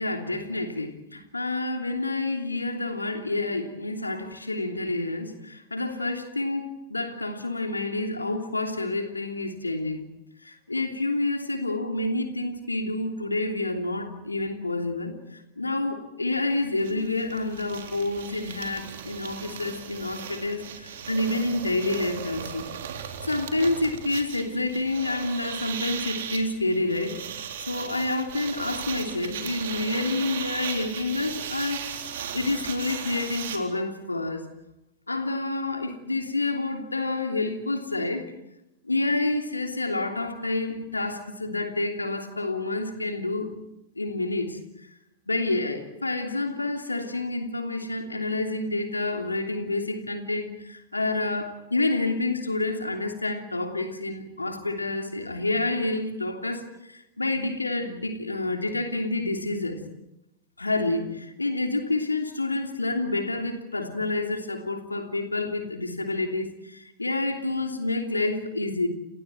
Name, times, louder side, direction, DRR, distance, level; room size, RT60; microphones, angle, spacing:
voice 1, 0.0-10.0 10.4-22.7 23.2-32.1 32.3-34.4 35.1-38.3 38.8-43.5 44.0-44.6 45.3-59.8 60.6-68.9, left 2 dB, 80° left, 3.1 m, -28 dB
sound 1, 16.3-16.4 16.6-33.6, right 8 dB, 60° right, 4.0 m, -37 dB
30.0 x 29.5 x 4.5 m
figure-of-eight pair, 90°, 0 cm